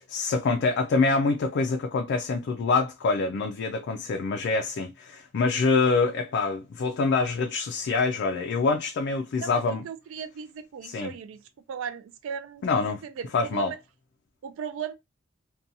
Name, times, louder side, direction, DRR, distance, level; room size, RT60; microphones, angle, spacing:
voice 1, 0.0-9.8 10.8-11.1 12.6-13.0 13.3-13.7, left 4 dB, 55° left, 0.3 m, -25 dB
voice 2, 9.4-11.4 11.7-13.8 14.4-14.9, right 7 dB, 65° right, 0.3 m, -37 dB
2.6 x 2.2 x 2.6 m
head